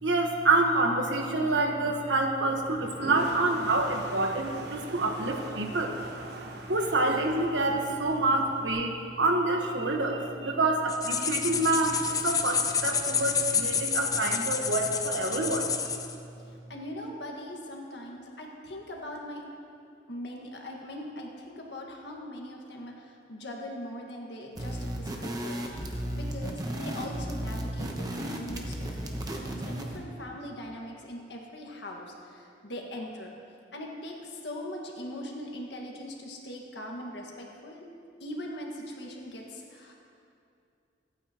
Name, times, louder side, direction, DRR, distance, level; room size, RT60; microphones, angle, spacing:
voice 1, 0.0-6.0 6.7-15.7, right 2 dB, 85° right, 3 dB, 1.3 m, -27 dB
Toilet flush, 2.6-8.7, right 2 dB, 65° right, 1.1 m, -42 dB
sound 1, 10.9-16.1, left 6 dB, 20° left, 0.5 m, -29 dB
voice 2, 16.5-19.4 20.1-25.6 25.9-33.3 33.7-37.8 38.2-39.9, left 1 dB, 75° left, 0 dB, 1.7 m, -41 dB
sound 2, 24.5-30.0, right 1 dB, 20° right, 1.0 m, -34 dB
23.5 x 8.9 x 3.0 m, 2.5 s
head